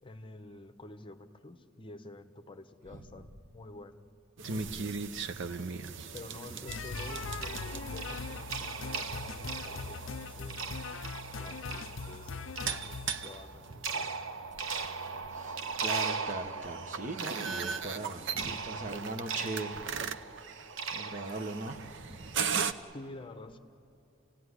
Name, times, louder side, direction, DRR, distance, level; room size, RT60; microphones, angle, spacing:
voice 1, 0.0-4.1 4.4-5.0 5.9-10.8 11.4-14.3 22.9-23.6, left 2 dB, 25° left, 9 dB, 0.9 m, -49 dB
sound 1, 4.4-22.7, right 6 dB, 65° right, 0.7 m, -39 dB
sound 2, 6.7-13.3, left 5 dB, 65° left, 0.5 m, -41 dB
sound 3, 6.9-22.7, right 5 dB, 80° right, 1.2 m, -39 dB
voice 2, 15.0-22.4, right 2 dB, 40° right, 6 dB, 1.3 m, -40 dB
29.0 x 17.0 x 9.8 m, 2.8 s
head